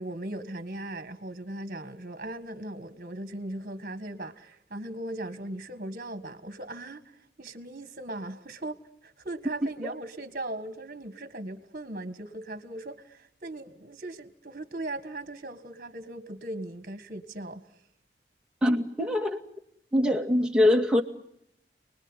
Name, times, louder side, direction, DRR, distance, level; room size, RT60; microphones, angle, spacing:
voice 1, 0.0-7.0 7.4-17.7, right 1 dB, 50° right, 1.7 m, -38 dB
voice 2, 18.6-19.4 19.9-21.0, left 1 dB, 5° right, 2.1 m, -23 dB
29.5 x 20.5 x 9.9 m
head